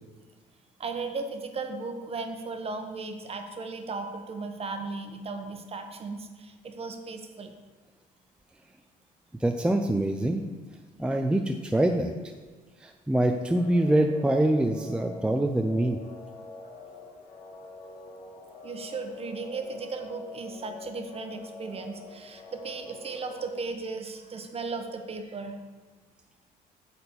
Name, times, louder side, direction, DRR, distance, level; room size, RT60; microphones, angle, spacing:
voice 1, 0.8-7.5 18.6-25.6, right 4 dB, 35° right, 5 dB, 1.1 m, -36 dB
voice 2, 9.4-10.4 11.0-12.1 12.8-16.0, right 1 dB, 5° right, 4 dB, 0.5 m, -24 dB
sound 1, 13.4-23.5, left 3 dB, 55° left, 2.0 m, -45 dB
8.6 x 4.3 x 6.9 m, 1.4 s
cardioid pair, 110°, 17 cm